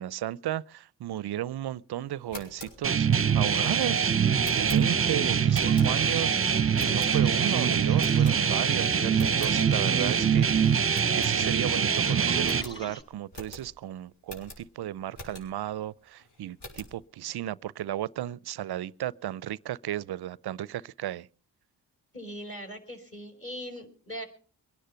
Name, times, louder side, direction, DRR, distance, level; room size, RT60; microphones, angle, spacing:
voice 1, 0.0-3.1 3.3-21.3, right 12 dB, 55° right, 0.6 m, -34 dB
sound 1, 2.1-6.3 6.7-7.5 8.0-8.8 9.1-9.6 10.0-10.1 10.4-10.5 10.9-11.8 12.1-12.2 12.4-15.7 16.2-17.0, left 1 dB, 60° left, 6.4 m, -46 dB
sound 2, 2.8-12.6, right 7 dB, 30° right, 0.9 m, -24 dB
sound 3, 5.0-13.0, equal, 10° left, 5.2 m, -44 dB
voice 2, 22.1-24.3, equal, 30° left, 5.2 m, -40 dB
23.0 x 10.0 x 5.7 m
supercardioid pair, 50°, 46 cm